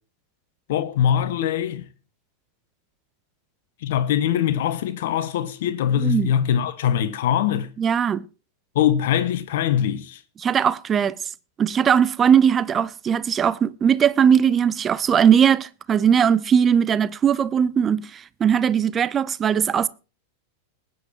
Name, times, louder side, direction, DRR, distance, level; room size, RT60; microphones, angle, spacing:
voice 1, 0.7-1.8 3.8-7.7 8.7-10.2, left 9 dB, 55° left, 1.2 m, -22 dB
voice 2, 6.0-6.3 7.8-8.3 10.4-11.2 11.6-19.9, right 8 dB, 25° right, 0.6 m, -19 dB
20.5 x 9.2 x 2.8 m
figure-of-eight pair, 90°, 0 cm